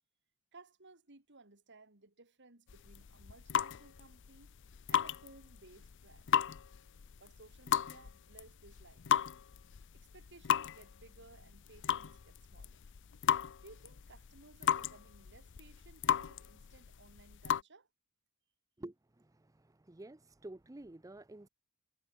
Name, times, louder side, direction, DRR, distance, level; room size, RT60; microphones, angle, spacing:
voice 1, 0.5-4.5 4.9-6.3 7.2-9.1 9.9-12.8 13.6-17.9, right 3 dB, 55° right, 2.9 m, -59 dB
sound 1, 2.7-17.6, left 8 dB, 55° left, 0.5 m, -36 dB
voice 2, 18.8-21.5, right 1 dB, 15° right, 0.6 m, -50 dB
head